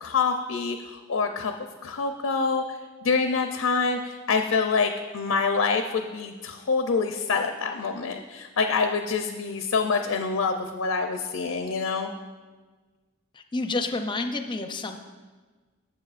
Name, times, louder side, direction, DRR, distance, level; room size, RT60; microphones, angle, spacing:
voice 1, 0.0-1.5 1.8-2.6 3.0-12.1, left 4 dB, 85° left, 5 dB, 0.5 m, -26 dB
voice 2, 13.4-15.0, left 3 dB, 25° left, 7 dB, 0.5 m, -29 dB
11.5 x 7.4 x 2.5 m, 1.4 s
head